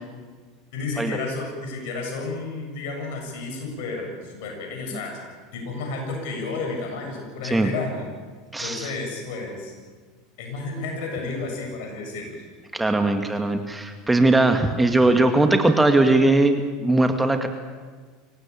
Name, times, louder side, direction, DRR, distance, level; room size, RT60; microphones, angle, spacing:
voice 1, 0.7-5.2 5.5-8.1 8.6-9.7 10.4-12.4, left 3 dB, 65° left, 2 dB, 7.7 m, -31 dB
voice 2, 8.5-8.9 12.7-17.5, right 2 dB, 10° right, 6 dB, 2.1 m, -19 dB
25.0 x 17.5 x 8.7 m, 1.5 s
hypercardioid pair, 80°, 0 cm